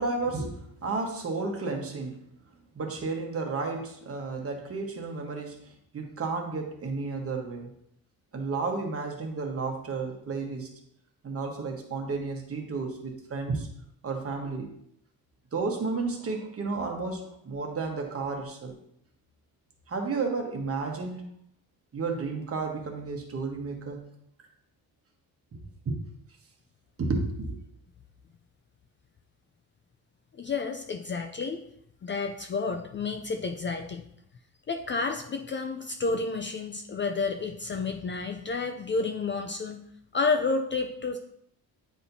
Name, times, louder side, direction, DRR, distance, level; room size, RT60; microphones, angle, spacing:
voice 1, 0.0-2.2 2.7-7.7 8.3-10.7 11.2-13.7 14.0-14.7 15.5-18.8 19.9-21.2 21.9-24.0 25.8-26.0 27.0-27.6, right 4 dB, 40° right, 2 dB, 1.2 m, -32 dB
voice 2, 30.3-31.6 32.0-34.1 34.7-39.8 40.1-41.2, left 4 dB, 30° left, 5 dB, 0.4 m, -30 dB
9.2 x 4.3 x 2.7 m, 0.71 s
cardioid pair, 145°, 37 cm